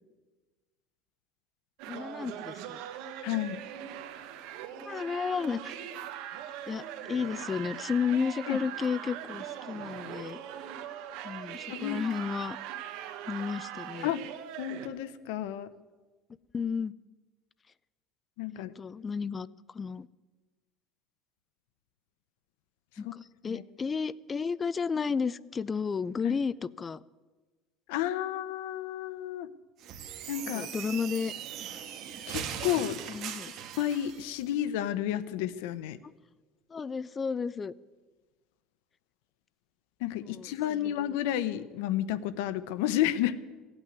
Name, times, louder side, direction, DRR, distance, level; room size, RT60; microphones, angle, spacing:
sound 1, 1.8-14.9, right 10 dB, 70° right, 1.4 m, -41 dB
voice 1, 1.9-2.8 4.8-5.9 6.7-10.4 11.2-12.6 13.3-14.1 16.5-16.9 18.5-20.1 23.0-27.0 30.5-31.3 33.1-33.5 36.7-37.7 40.2-40.9, left 5 dB, 20° left, 19 dB, 0.4 m, -33 dB
voice 2, 3.2-3.6 8.5-8.6 11.7-12.0 14.0-14.3 14.6-15.7 18.4-18.7 23.0-23.1 23.4-23.6 26.2-26.3 27.9-29.5 30.3-30.7 32.3-33.0 33.8-36.0 40.0-43.4, left 12 dB, 90° left, 14 dB, 0.8 m, -31 dB
sound 2, 29.8-34.2, right 9 dB, 50° right, 1.5 m, -39 dB
16.0 x 8.9 x 9.5 m, 1.3 s
cardioid pair, 145°, 0 cm